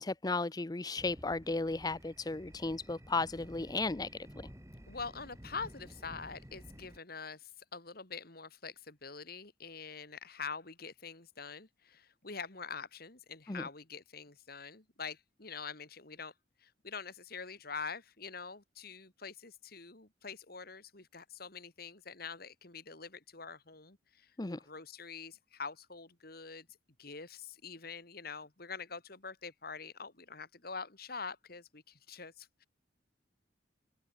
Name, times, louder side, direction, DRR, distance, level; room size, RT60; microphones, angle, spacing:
voice 1, 0.0-4.1 13.5-13.7 24.4-24.6, left 3 dB, 20° left, 0.6 m, -35 dB
sound 1, 1.0-7.0, equal, 15° right, 6.3 m, -52 dB
voice 2, 4.9-16.3 16.6-24.3 24.6-26.7 27.0-32.7, left 5 dB, 55° left, 2.9 m, -45 dB
open air
head